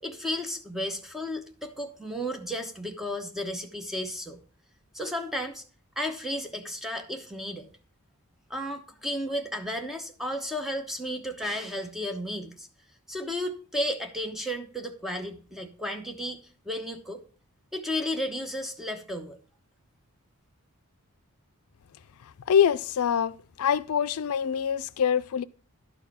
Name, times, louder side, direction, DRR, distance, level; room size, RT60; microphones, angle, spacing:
voice 1, 0.0-4.4 4.9-5.6 6.0-7.7 8.5-12.7 13.1-17.2 17.7-19.4, equal, ahead, 1.1 m, -33 dB
voice 2, 22.5-25.4, left 8 dB, 75° left, 0.4 m, -25 dB
11.5 x 4.7 x 6.1 m
head